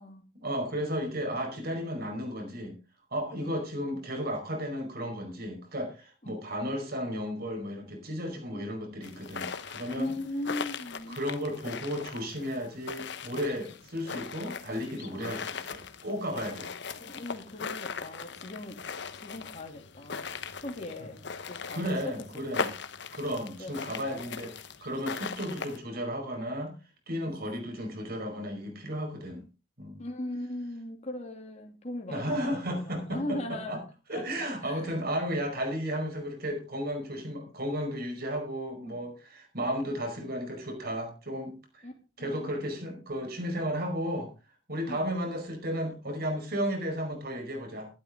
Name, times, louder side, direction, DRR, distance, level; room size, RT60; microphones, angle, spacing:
voice 1, 0.4-2.8 3.1-10.1 11.1-16.7 21.7-22.7 23.1-26.8 27.1-29.5 29.8-30.0 32.1-33.8 34.1-41.8 42.2-44.3 44.7-47.9, equal, 55° right, 4 dB, 5.1 m, -34 dB
sound 1, 9.0-25.8, left 5 dB, 65° left, 1.2 m, -39 dB
voice 2, 10.0-11.2 15.1-15.3 16.9-18.8 19.1-20.3 20.6-22.4 23.6-24.0 27.2-27.4 30.0-33.8 34.1-35.0 38.9-39.0 41.8-41.9 42.2-42.5 44.9-45.1, left 1 dB, 35° left, 2 dB, 2.8 m, -39 dB
13.0 x 12.0 x 3.8 m, 0.31 s
head